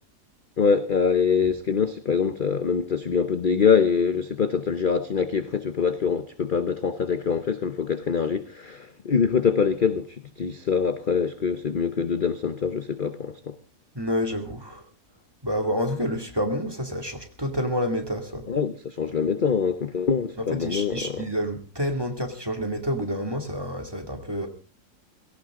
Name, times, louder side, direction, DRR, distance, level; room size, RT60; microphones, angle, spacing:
voice 1, 0.6-13.6 18.5-21.3, left 6 dB, 40° left, 0.8 m, -24 dB
voice 2, 13.9-14.8 15.4-18.4 20.6-24.5, equal, 15° right, 2.5 m, -28 dB
18.0 x 17.5 x 3.7 m
omnidirectional pair, 1.7 m